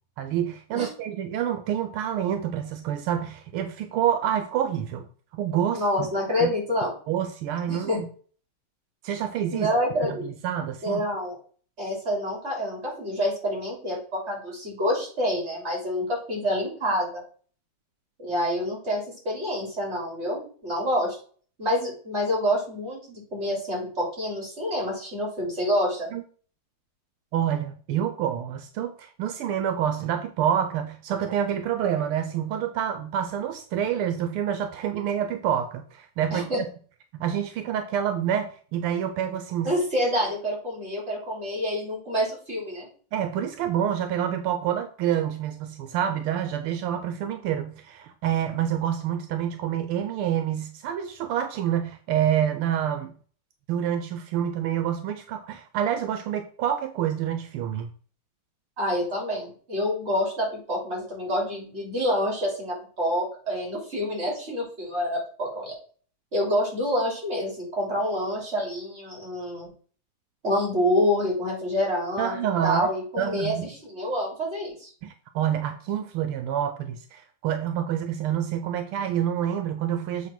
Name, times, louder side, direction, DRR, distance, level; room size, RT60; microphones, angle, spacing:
voice 1, 0.2-5.1 5.3-6.1 6.4-6.5 7.1-8.1 9.0-9.7 10.0-11.0 26.1-26.2 27.3-36.4 37.1-39.7 43.1-53.1 53.7-57.9 72.2-72.9 73.2-73.7 75.0-80.3, right 9 dB, 85° right, 8 dB, 1.6 m, -27 dB
voice 2, 5.7-6.9 7.7-8.0 9.5-10.3 10.8-11.4 11.8-17.2 18.2-21.2 21.6-26.1 36.3-36.6 39.6-42.9 58.8-65.8 66.3-69.7 70.4-72.4 72.6-73.5 73.8-74.9, equal, 30° right, -2 dB, 3.6 m, -27 dB
7.4 x 3.7 x 6.0 m, 0.43 s
omnidirectional pair, 2.3 m